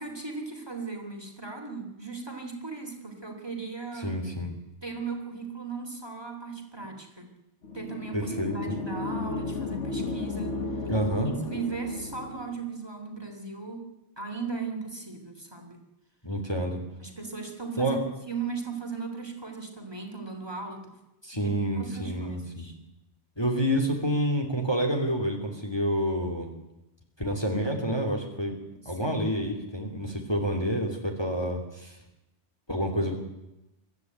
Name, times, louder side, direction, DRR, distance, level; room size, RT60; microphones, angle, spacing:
voice 1, 0.0-4.1 4.8-7.3 7.7-10.8 11.3-13.9 14.2-15.8 17.0-18.0 18.3-21.0 21.3-22.7 28.8-29.3, right 4 dB, 20° right, 2 dB, 3.4 m, -37 dB
voice 2, 4.0-4.5 8.1-8.8 10.9-11.3 16.2-16.8 17.8-18.0 21.2-22.7 23.4-26.5 27.2-28.6 28.8-32.0 32.7-33.2, equal, 20° left, 2 dB, 3.0 m, -28 dB
sound 1, 7.6-12.6, left 3 dB, 80° left, 1.9 m, -34 dB
24.0 x 14.0 x 9.5 m, 0.95 s
omnidirectional pair, 1.2 m